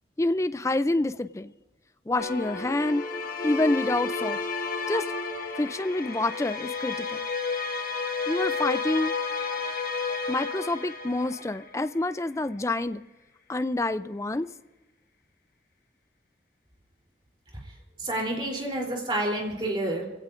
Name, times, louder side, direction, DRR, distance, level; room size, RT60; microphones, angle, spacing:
voice 1, 0.2-1.5 2.1-3.0 3.4-4.4 4.9-5.1 5.6-7.2 8.3-9.1 10.3-13.0 13.5-14.5, left 2 dB, 15° left, 12 dB, 0.4 m, -27 dB
sound 1, 2.2-11.9, left 4 dB, 50° left, 1.3 m, -31 dB
voice 2, 18.0-20.0, right 1 dB, 25° right, -1 dB, 3.4 m, -29 dB
26.5 x 16.5 x 2.6 m, 1.1 s
head